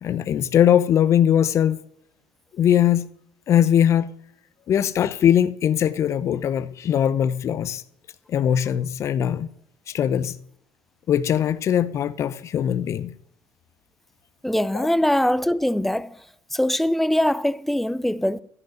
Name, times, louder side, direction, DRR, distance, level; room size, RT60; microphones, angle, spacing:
voice 1, 0.0-1.8 2.6-3.1 3.5-4.1 4.7-7.8 8.3-9.5 9.9-10.4 11.1-13.1 14.7-14.9, left 9 dB, 45° left, 0.8 m, -20 dB
voice 2, 14.4-16.2 16.5-18.4, left 1 dB, 5° left, 0.5 m, -22 dB
14.0 x 5.3 x 9.5 m
supercardioid pair, 90°, 7 cm